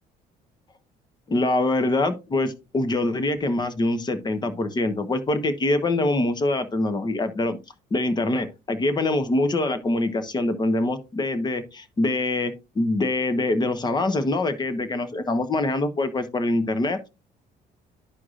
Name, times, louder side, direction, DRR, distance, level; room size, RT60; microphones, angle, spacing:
voice 1, 1.3-7.6 7.9-17.1, left 2 dB, 25° left, 1.1 m, -24 dB
11.5 x 4.7 x 2.5 m
cardioid pair, 110°, 17 cm